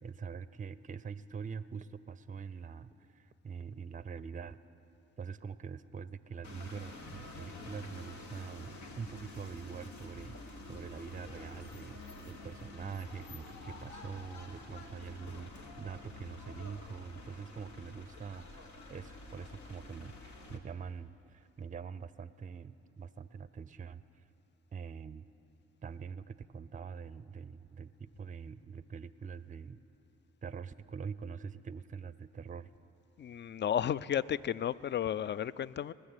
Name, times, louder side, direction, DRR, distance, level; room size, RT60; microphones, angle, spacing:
voice 1, 0.0-4.6 5.2-24.2 24.7-25.2 25.8-29.8 30.4-32.7, right 6 dB, 25° right, 16 dB, 0.5 m, -44 dB
sound 1, 6.4-20.6, left 2 dB, 75° left, 1.2 m, -49 dB
voice 2, 33.2-35.9, left 9 dB, 40° left, 19 dB, 0.4 m, -33 dB
19.5 x 6.6 x 8.0 m, 2.7 s
supercardioid pair, 45°, 29 cm